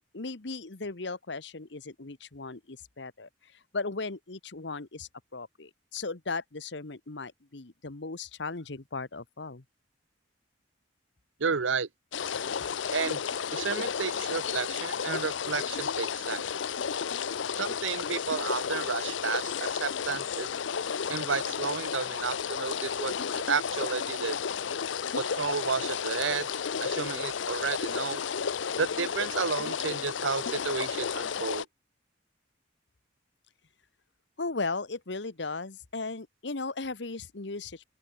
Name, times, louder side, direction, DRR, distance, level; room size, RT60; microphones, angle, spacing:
voice 1, 0.1-9.6 34.4-37.8, left 3 dB, 65° left, 1.3 m, -37 dB
voice 2, 11.4-11.9 12.9-13.2 13.5-16.4 17.6-20.5 21.1-23.1 23.5-24.4 25.2-26.5 26.8-28.2 28.8-31.6, right 5 dB, 90° right, 0.9 m, -32 dB
sound 1, 12.1-31.6, left 7 dB, 80° left, 0.6 m, -32 dB
open air
head